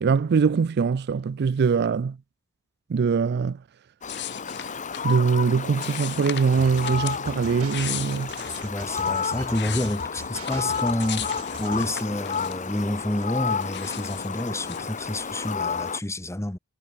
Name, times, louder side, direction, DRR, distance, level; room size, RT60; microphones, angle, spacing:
voice 1, 0.0-2.2 2.9-3.6 5.0-8.3, right 5 dB, 50° right, 0.4 m, -22 dB
Fowl, 4.0-16.0, left 6 dB, 35° left, 1.3 m, -31 dB
sound 1, 4.1-5.2 5.8-7.2 7.6-8.7 9.2-12.8 13.1-14.9, left 9 dB, 50° left, 2.9 m, -37 dB
sound 2, 6.6-12.1, right 3 dB, 80° right, 6.0 m, -41 dB
voice 2, 8.6-11.3 11.6-16.6, left 1 dB, 15° left, 1.1 m, -29 dB
head